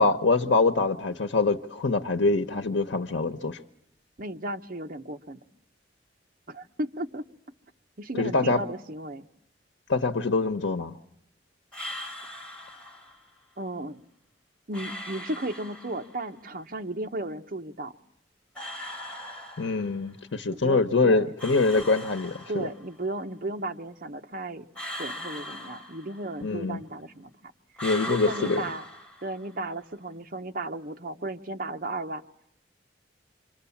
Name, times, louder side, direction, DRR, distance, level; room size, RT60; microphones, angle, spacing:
voice 1, 0.0-3.6 8.2-8.6 9.9-11.0 19.6-22.7 26.4-26.8 27.8-28.6, left 3 dB, 85° left, 7 dB, 1.0 m, -24 dB
voice 2, 4.2-5.4 6.5-7.3 8.0-9.3 13.6-14.0 14.7-17.9 20.5-21.3 22.5-27.5 28.0-28.8 29.2-32.2, right 2 dB, 50° right, 6 dB, 1.0 m, -35 dB
sound 1, 11.7-13.2 14.7-16.2 18.5-20.1 21.4-22.9 24.7-26.5 27.8-29.6, left 1 dB, 5° left, 5.7 m, -39 dB
27.5 x 25.5 x 7.2 m, 0.80 s
head